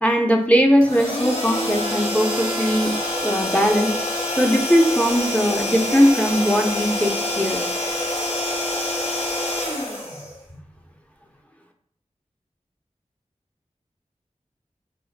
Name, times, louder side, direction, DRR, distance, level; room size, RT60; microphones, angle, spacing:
voice 1, 0.0-2.9 3.2-3.9 4.4-7.6, equal, 10° left, 2 dB, 0.4 m, -19 dB
sound 1, 0.8-10.8, left 1 dB, 50° left, 0.9 m, -26 dB
3.3 x 2.1 x 2.4 m, 0.63 s
wide cardioid pair, 55°, 13 cm